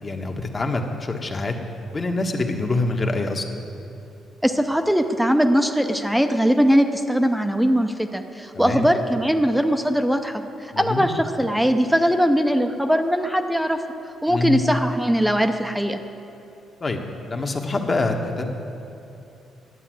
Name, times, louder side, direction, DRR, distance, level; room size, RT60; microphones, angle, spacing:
voice 1, 0.0-1.6 1.9-3.5 8.5-8.9 10.7-11.1 14.3-14.6 16.8-18.5, left 2 dB, 35° left, 3 dB, 1.3 m, -25 dB
voice 2, 4.4-10.4 10.8-13.8 14.2-16.0, equal, 5° right, 7 dB, 0.7 m, -20 dB
11.0 x 9.1 x 7.7 m, 2.7 s
cardioid pair, 90°, 0 cm